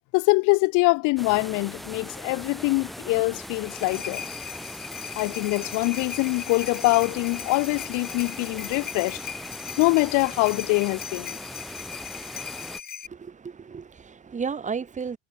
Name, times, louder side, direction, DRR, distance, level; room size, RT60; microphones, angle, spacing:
voice 1, 0.1-4.2 5.2-9.2 9.8-11.4, left 26 dB, 70° left, 1.9 m, -24 dB
sound 1, 1.2-12.8, equal, ahead, 4.0 m, -40 dB
sound 2, 3.6-13.1, left 7 dB, 30° left, 7.7 m, -38 dB
voice 2, 13.0-15.2, right 6 dB, 20° right, 7.8 m, -33 dB
cardioid pair, 135°, 32 cm